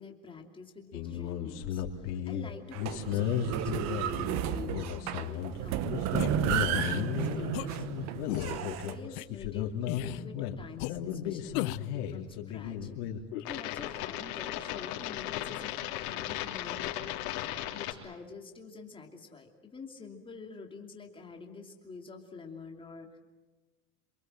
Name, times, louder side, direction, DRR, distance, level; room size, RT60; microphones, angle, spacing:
voice 1, 0.0-5.8 6.2-6.5 6.7-12.9 13.4-15.8 16.0-17.4 17.7-23.2, left 4 dB, 10° left, 2 dB, 2.8 m, -47 dB
sound 1, 0.9-17.9, left 10 dB, 90° left, 3.8 m, -35 dB
sound 2, 2.7-8.9, right 11 dB, 35° right, 0.9 m, -33 dB
sound 3, 6.2-6.3 6.7-7.0 7.5-7.7 8.3-8.6 9.2-9.3 9.9-10.2 10.8-10.9 11.5-11.9, left 20 dB, 65° left, 0.8 m, -35 dB
28.0 x 23.5 x 7.7 m, 1.2 s
cardioid pair, 170°, 44 cm